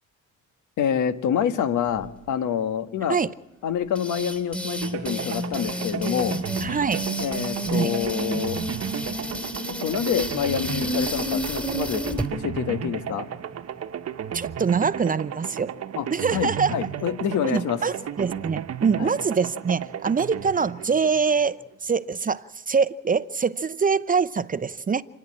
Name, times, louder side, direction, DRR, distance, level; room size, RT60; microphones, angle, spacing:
voice 1, 0.8-3.2 3.6-6.4 7.2-8.6 9.8-12.1 12.3-13.2 16.0-16.1 16.3-17.8 19.0-19.1, left 8 dB, 75° left, 1.6 m, -27 dB
sound 1, 3.9-12.3, equal, 5° left, 3.0 m, -30 dB
sound 2, 4.8-21.7, right 9 dB, 55° right, 1.1 m, -34 dB
voice 2, 6.6-7.0 7.7-7.9 14.3-15.7 16.1-16.7 17.4-25.0, right 5 dB, 30° right, 0.7 m, -24 dB
30.0 x 10.0 x 8.7 m
cardioid pair, 90°, 30 cm